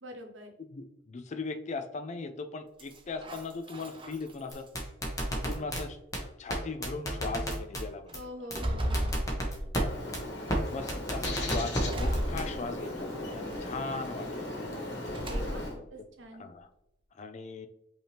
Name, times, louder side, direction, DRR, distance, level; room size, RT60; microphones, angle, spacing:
voice 1, 0.0-0.5 8.1-9.2 15.2-16.5, equal, 85° right, 4 dB, 0.9 m, -44 dB
voice 2, 0.6-4.7 5.4-8.3 8.6-8.9 10.7-14.8 16.3-16.7 17.2-17.7, left 4 dB, 40° left, 8 dB, 0.4 m, -39 dB
sound 1, 2.8-4.7 5.2-5.9 6.6-6.7 7.2-7.6 8.1-10.0 10.5-11.0 11.9-13.0 13.5-14.1 15.0-15.9, equal, 30° right, 0.7 m, -36 dB
sound 2, 4.5-5.8 6.1-6.2 6.5-6.6 6.8-7.8 8.1-8.2 8.5-8.6 8.9-9.8 10.1-10.2 10.5-10.6 10.9-11.8 12.1-12.4, equal, 20° left, 1.0 m, -31 dB
Bird, 9.8-15.7, left 1 dB, 65° left, 1.3 m, -38 dB
5.5 x 2.9 x 3.3 m, 0.80 s
head